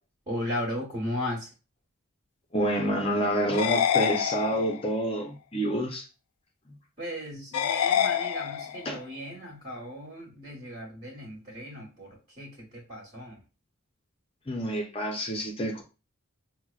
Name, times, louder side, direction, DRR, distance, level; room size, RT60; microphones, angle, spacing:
voice 1, 0.3-1.5 7.0-13.4, left 1 dB, 30° right, 1.2 m, -36 dB
voice 2, 2.5-6.1 8.8-9.0 14.5-15.8, right 1 dB, 25° left, 0.6 m, -28 dB
sound 1, 3.5-4.9 7.5-8.9, left 9 dB, 85° left, 0.3 m, -27 dB
5.9 x 2.1 x 2.4 m
head